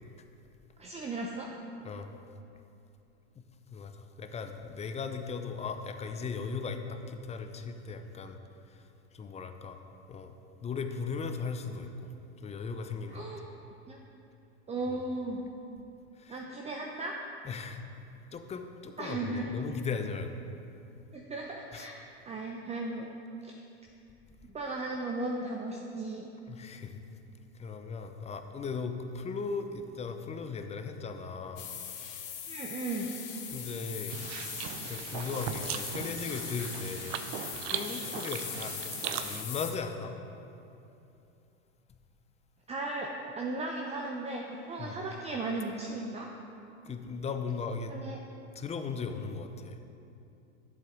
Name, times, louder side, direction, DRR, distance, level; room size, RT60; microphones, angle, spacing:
voice 1, 0.8-1.5 13.1-13.4 13.9-14.0 14.7-15.4 16.3-17.2 19.0-19.5 21.1-23.1 23.4-23.6 24.4-26.3 32.5-33.1 42.7-46.3 47.9-48.2, right 2 dB, 20° right, 1 dB, 0.8 m, -36 dB
voice 2, 3.7-8.4 8.7-8.8 9.1-9.8 10.1-10.3 10.6-12.1 12.4-13.3 14.9-15.0 16.2-16.4 17.4-17.8 18.3-20.4 21.7-21.9 26.5-27.0 27.6-31.8 33.5-34.2 34.8-37.2 37.5-38.8 39.1-40.1 44.8-45.0 46.8-47.9 48.5-49.8, left 5 dB, 20° left, 7 dB, 0.6 m, -37 dB
sound 1, 31.6-39.7, left 8 dB, 45° left, 1.4 m, -40 dB
sound 2, 34.1-39.4, right 9 dB, 60° right, 0.7 m, -38 dB
11.5 x 7.5 x 3.8 m, 2.7 s
hypercardioid pair, 95°, 35 cm